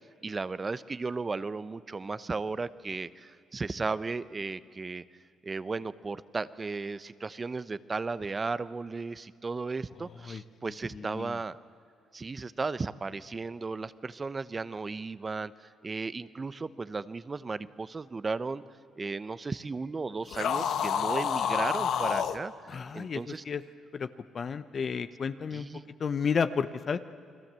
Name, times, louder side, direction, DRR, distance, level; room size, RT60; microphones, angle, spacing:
voice 1, 0.2-5.0 5.4-11.6 12.1-18.6 19.0-23.4 25.5-25.9, right 4 dB, 30° right, 16 dB, 0.8 m, -35 dB
voice 2, 10.9-11.4 22.7-23.6 23.9-24.1 24.3-25.7 26.0-27.0, left 6 dB, 45° left, 11 dB, 0.8 m, -32 dB
sound 1, 20.3-22.4, left 8 dB, 70° left, 1.1 m, -28 dB
29.0 x 21.5 x 7.6 m, 2.3 s
cardioid pair, 90°, 0 cm